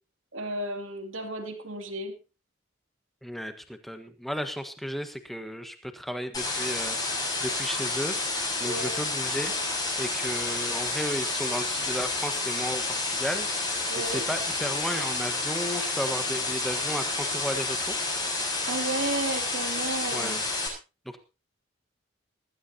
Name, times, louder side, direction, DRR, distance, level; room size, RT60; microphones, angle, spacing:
voice 1, 0.3-2.1 8.6-9.0 13.9-14.2 18.7-20.4, right 2 dB, 80° right, 6 dB, 2.7 m, -33 dB
voice 2, 3.2-8.1 8.6-9.5 10.0-13.5 14.0-17.9 20.1-20.4 21.0-21.2, equal, ahead, 7 dB, 1.3 m, -34 dB
sound 1, 6.3-20.7, left 3 dB, 20° left, 6.9 m, -30 dB
20.0 x 14.5 x 2.9 m, 0.30 s
head